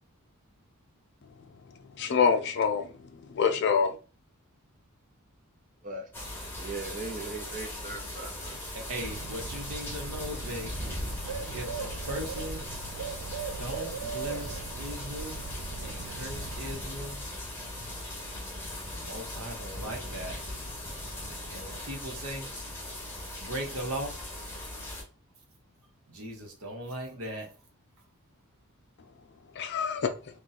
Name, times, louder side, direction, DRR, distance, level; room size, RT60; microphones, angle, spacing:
voice 1, 2.0-2.9 3.3-3.9 29.6-30.1, left 6 dB, 50° left, 0.4 m, -25 dB
sound 1, 6.1-25.0, left 1 dB, 10° left, 0.8 m, -39 dB
voice 2, 6.6-8.6, right 3 dB, 35° right, 0.6 m, -39 dB
voice 3, 8.7-12.7 13.5-15.5 15.8-17.4 18.0-18.1 18.9-20.4 21.5-22.5 23.1-24.2 26.1-27.7, right 1 dB, 70° right, 0.9 m, -39 dB
Bird, 9.0-16.8, right 5 dB, 90° right, 0.4 m, -40 dB
2.6 x 2.3 x 3.9 m
head